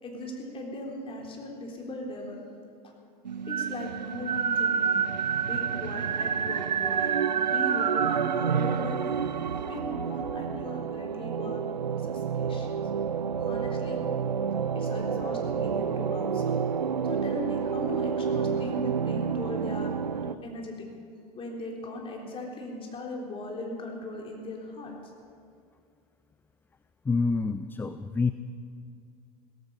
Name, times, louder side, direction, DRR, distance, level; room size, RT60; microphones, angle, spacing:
voice 1, 0.0-2.4 2.8-2.9 3.5-11.6 12.0-12.8 13.4-14.0 14.7-16.6 17.1-19.9 20.2-20.9 21.3-25.1, left 1 dB, 25° left, -1 dB, 3.8 m, -38 dB
sound 1, 3.3-20.4, right 7 dB, 90° right, 0.5 m, -29 dB
voice 2, 27.0-28.3, left 4 dB, 10° left, 12 dB, 0.4 m, -27 dB
17.0 x 15.0 x 5.5 m, 2.3 s
hypercardioid pair, 90°, 21 cm